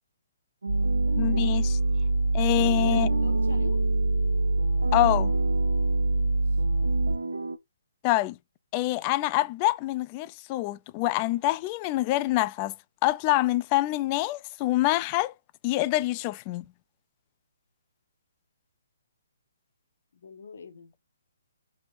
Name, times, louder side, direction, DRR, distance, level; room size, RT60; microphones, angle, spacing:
sound 1, 0.6-7.6, right 4 dB, 85° right, 0.5 m, -34 dB
sound 2, 0.7-7.2, right 2 dB, 55° right, 1.3 m, -24 dB
voice 1, 1.2-1.8 2.3-3.1 4.9-5.3 8.0-8.4 8.7-12.7 13.0-15.3 15.6-16.6, left 18 dB, 30° left, 0.3 m, -26 dB
voice 2, 2.4-3.8 6.1-6.6 20.1-20.9, left 5 dB, 65° left, 1.4 m, -44 dB
4.5 x 3.4 x 2.5 m
hypercardioid pair, 145°, 0 cm